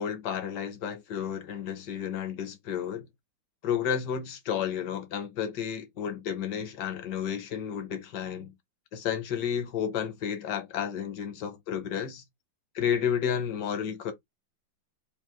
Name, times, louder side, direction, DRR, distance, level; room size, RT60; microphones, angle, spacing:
voice 1, 0.0-3.1 3.6-8.5 8.9-12.2 12.7-14.1, left 8 dB, 65° left, 1.4 m, -31 dB
3.3 x 2.5 x 3.6 m
omnidirectional pair, 2.1 m